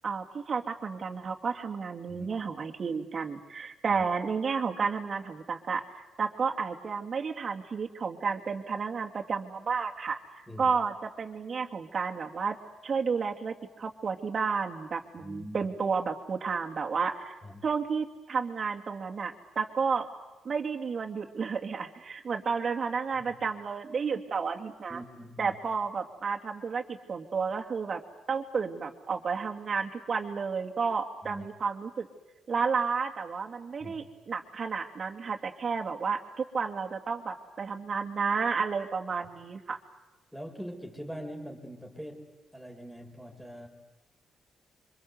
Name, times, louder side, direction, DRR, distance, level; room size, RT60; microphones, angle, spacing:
voice 1, 0.0-10.2 10.6-12.6 12.8-20.1 20.4-25.0 25.4-28.0 28.3-32.1 32.5-39.8, right 5 dB, 40° right, 3 dB, 2.6 m, -31 dB
voice 2, 15.2-15.7 17.4-17.6 23.1-23.3 24.9-25.6 31.2-31.5 33.8-34.0 40.3-43.7, equal, ahead, 2 dB, 4.4 m, -43 dB
27.5 x 25.5 x 8.1 m, 1.1 s
cardioid pair, 110°, 0 cm